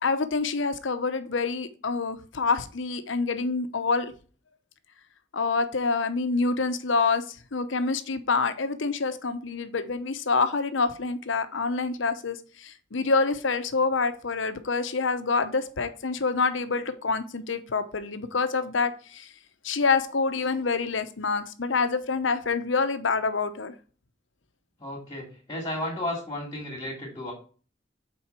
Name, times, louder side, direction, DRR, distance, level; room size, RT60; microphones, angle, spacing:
voice 1, 0.0-4.1 5.3-19.3 19.6-23.7, left 4 dB, 85° left, 10 dB, 0.8 m, -27 dB
voice 2, 24.8-27.3, left 1 dB, 25° left, -5 dB, 2.7 m, -33 dB
7.4 x 4.6 x 4.5 m, 0.38 s
head